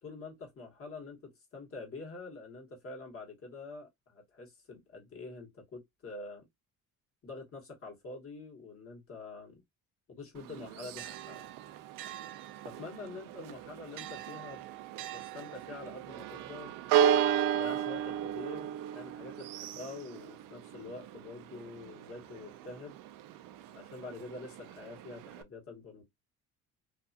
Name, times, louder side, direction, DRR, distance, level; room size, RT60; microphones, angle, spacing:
voice 1, 0.0-6.5 7.2-9.6 10.1-11.5 12.6-14.6 15.1-16.7 17.6-23.0 23.7-26.0, left 3 dB, 40° left, 1.5 m, -46 dB
Church bell, 10.4-25.4, right 9 dB, 70° right, 0.5 m, -35 dB
2.7 x 2.4 x 2.6 m
cardioid pair, 90°, 34 cm